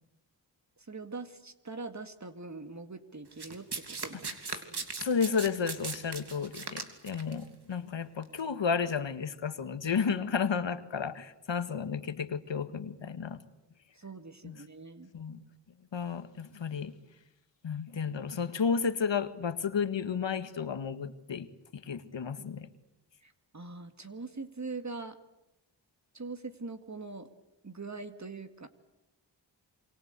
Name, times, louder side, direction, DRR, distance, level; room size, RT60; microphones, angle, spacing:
voice 1, 0.8-4.3 4.7-4.9 13.9-15.1 23.2-25.2 26.1-27.3 27.6-28.7, right 3 dB, 40° right, 2.2 m, -42 dB
Domestic sounds home sounds, 3.4-7.3 8.2-8.4, right 4 dB, 60° right, 3.2 m, -38 dB
voice 2, 5.0-13.4 14.4-14.6 15.1-15.4 15.9-16.9 17.6-22.7, left 6 dB, 75° left, 1.8 m, -32 dB
27.0 x 24.5 x 8.2 m
cardioid pair, 50°, 44 cm